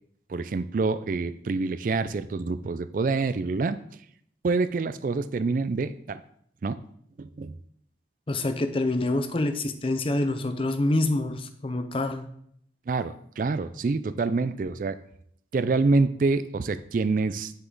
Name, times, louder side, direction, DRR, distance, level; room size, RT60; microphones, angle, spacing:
voice 1, 0.3-3.8 4.4-6.2 6.6-6.8 7.2-7.5 12.9-15.0 15.5-17.5, right 3 dB, 50° right, 13 dB, 0.4 m, -26 dB
voice 2, 8.3-12.3, left 2 dB, 30° left, 9 dB, 0.6 m, -26 dB
7.1 x 6.6 x 3.9 m, 0.67 s
head